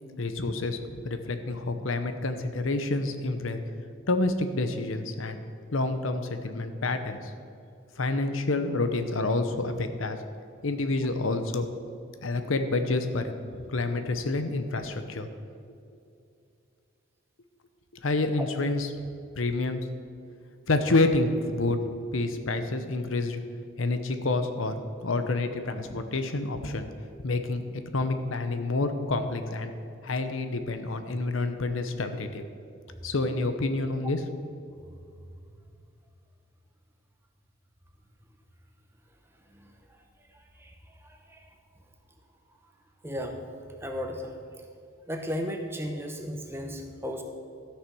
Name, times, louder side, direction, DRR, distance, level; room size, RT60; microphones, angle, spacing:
voice 1, 0.2-3.6 4.1-5.4 5.7-7.3 8.0-10.2 10.6-11.6 12.2-13.2 13.5-15.3 18.0-18.9 19.4-19.8 20.7-21.8 22.1-23.4 23.8-24.7 25.0-26.9 27.2-27.6 27.9-29.7 30.0-32.4 33.0-34.2, left 2 dB, 75° left, 8 dB, 0.8 m, -28 dB
voice 2, 40.3-40.7 41.0-41.4 43.0-43.4 43.8-44.4 45.1-47.2, equal, 10° right, 3 dB, 0.9 m, -35 dB
13.0 x 6.7 x 6.1 m, 2.4 s
head